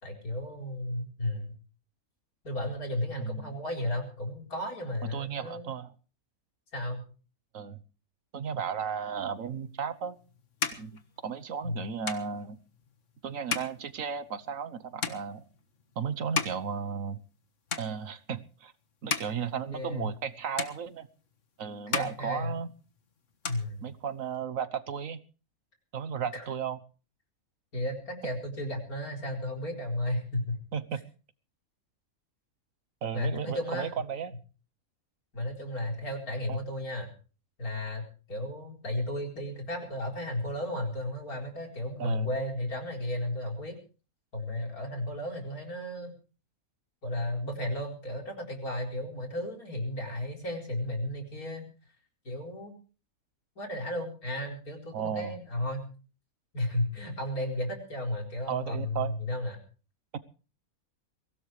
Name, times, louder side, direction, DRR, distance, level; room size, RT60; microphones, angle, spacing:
voice 1, 0.0-1.5 2.4-5.7 6.7-7.0 11.6-11.8 19.7-20.1 21.9-22.6 23.5-23.9 26.3-26.5 27.7-30.6 33.1-33.9 35.3-37.1 37.6-43.8 44.3-46.1 47.0-51.6 52.2-52.7 53.6-55.9 56.5-59.6, left 1 dB, 80° left, 1 dB, 4.9 m, -34 dB
voice 2, 3.2-3.5 5.0-5.9 7.5-7.8 8.3-10.2 10.8-12.6 13.2-15.4 16.0-17.2 17.8-18.7 19.0-21.1 21.6-22.7 23.8-25.2 25.9-26.8 30.7-31.0 33.0-34.3 36.5-36.6 42.0-42.3 54.9-55.4 58.5-59.1 60.1-60.2, right 7 dB, 65° right, 14 dB, 1.4 m, -34 dB
sound 1, 9.7-17.4 17.7-18.4 18.8-20.3 20.6-21.5 21.8-23.0 23.2-24.4, left 5 dB, 55° left, 1.8 m, -37 dB
23.0 x 17.5 x 3.3 m, 0.37 s
omnidirectional pair, 1.5 m